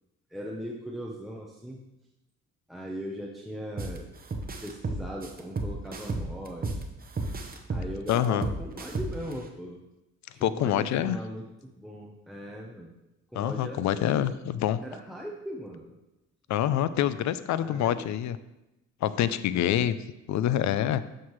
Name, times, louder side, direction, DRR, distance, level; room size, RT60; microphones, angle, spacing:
voice 1, 0.3-1.8 2.7-4.1 4.6-6.8 7.7-9.8 10.3-12.9 13.3-14.4 14.8-15.9 17.6-18.1 19.5-19.8, equal, ahead, -3 dB, 0.8 m, -39 dB
sound 1, 3.8-4.0 4.3-6.8 7.2-9.3, right 3 dB, 30° right, 0.9 m, -32 dB
voice 2, 8.1-8.4 10.4-11.2 13.3-14.8 16.5-18.4 19.0-19.9 20.3-21.0, left 11 dB, 70° left, 14 dB, 0.5 m, -26 dB
7.2 x 6.5 x 3.1 m, 0.95 s
cardioid pair, 90°, 30 cm